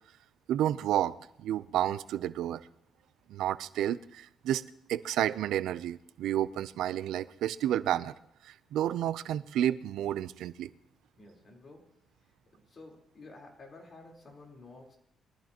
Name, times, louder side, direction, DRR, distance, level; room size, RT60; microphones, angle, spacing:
voice 1, 0.5-2.7 3.3-4.6 4.9-8.1 8.4-10.7, right 11 dB, 90° right, 0.5 m, -31 dB
voice 2, 11.2-15.0, left 2 dB, 40° left, 3.8 m, -52 dB
23.0 x 13.5 x 2.9 m
cardioid pair, 120°, 0 cm